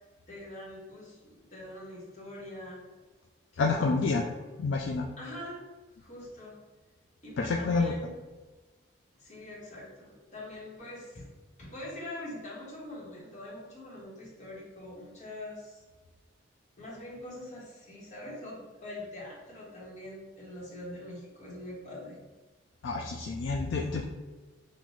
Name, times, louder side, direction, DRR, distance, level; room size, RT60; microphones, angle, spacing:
voice 1, 0.3-2.8 3.5-4.0 5.2-5.6 6.0-6.6 7.2-8.2 9.1-11.3 11.6-15.8 16.8-22.2, left 1 dB, 35° left, -5 dB, 1.3 m, -43 dB
voice 2, 3.6-4.2 4.6-5.1 7.4-7.9 22.8-24.0, left 3 dB, 60° left, 1 dB, 0.3 m, -28 dB
5.5 x 2.4 x 3.1 m, 1.3 s
head